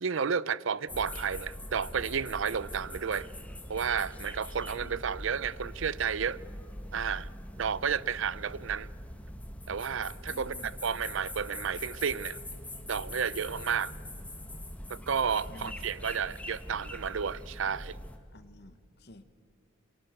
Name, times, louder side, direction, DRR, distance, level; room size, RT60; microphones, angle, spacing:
voice 1, 0.0-3.3 3.7-6.4 6.9-7.3 7.6-8.9 9.7-12.4 12.9-13.9 14.9-18.0, right 6 dB, 65° right, 0.5 m, -32 dB
sound 1, 0.9-18.2, left 1 dB, 5° left, 1.4 m, -43 dB
voice 2, 4.7-5.0 10.3-10.7 15.5-15.7 18.3-19.2, left 1 dB, 50° left, 1.3 m, -51 dB
28.5 x 24.0 x 6.6 m
head